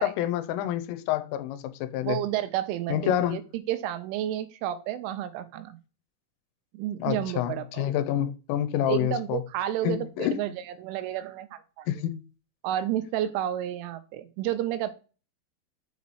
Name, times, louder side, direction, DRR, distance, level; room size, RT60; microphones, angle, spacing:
voice 1, 0.0-2.2 2.9-3.4 7.0-9.4 9.8-10.4 11.9-12.2, left 11 dB, 90° left, 3.3 m, -28 dB
voice 2, 2.0-5.8 6.7-7.9 8.9-10.5 10.8-11.9 12.6-14.9, right 12 dB, 90° right, 3.2 m, -31 dB
7.4 x 4.1 x 4.5 m
omnidirectional pair, 5.6 m